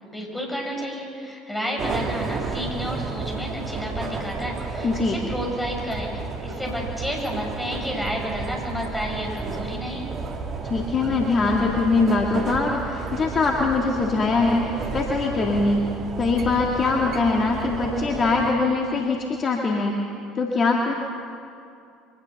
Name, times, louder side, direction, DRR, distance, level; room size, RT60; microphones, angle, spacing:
voice 1, 0.0-10.1, equal, 5° left, 0 dB, 6.6 m, -31 dB
sound 1, 1.8-18.5, right 4 dB, 40° right, 2.2 m, -32 dB
voice 2, 4.8-5.2 10.6-15.8 16.2-20.0 20.4-20.9, left 3 dB, 35° left, 0 dB, 2.1 m, -22 dB
23.5 x 19.0 x 7.0 m, 2.4 s
figure-of-eight pair, 65°, 0 cm